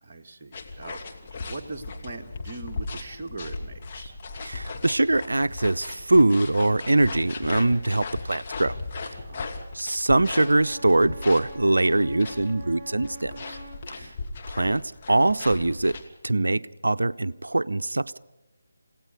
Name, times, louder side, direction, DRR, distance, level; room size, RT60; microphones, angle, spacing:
voice 1, 0.0-4.2 9.1-9.5 13.7-14.2, right 3 dB, 35° right, 2.0 m, -41 dB
sound 1, 0.5-16.1, left 3 dB, 30° left, 2.6 m, -37 dB
voice 2, 4.4-8.8 9.7-13.6 13.9-14.1 14.5-14.8 15.1-16.0 16.2-18.2, right 2 dB, 70° right, 0.7 m, -22 dB
Wind instrument woodwind instrument, 10.3-13.9, right 1 dB, 20° right, 7.0 m, -44 dB
28.5 x 17.5 x 5.3 m
figure-of-eight pair, 155°, 0 cm